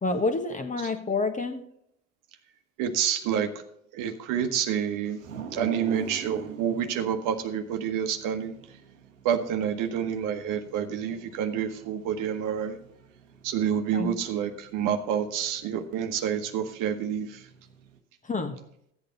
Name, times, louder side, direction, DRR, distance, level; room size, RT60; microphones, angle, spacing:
voice 1, 0.0-1.6 13.9-14.1 18.3-18.6, left 3 dB, 20° left, 7 dB, 1.3 m, -28 dB
voice 2, 2.8-3.6 3.9-5.2 5.5-8.6 9.2-12.8 13.4-17.5, right 8 dB, 55° right, 7 dB, 1.2 m, -28 dB
sound 1, 5.2-18.0, right 5 dB, 90° right, 1.1 m, -47 dB
14.0 x 8.4 x 4.0 m, 0.72 s
hypercardioid pair, 75°, 38 cm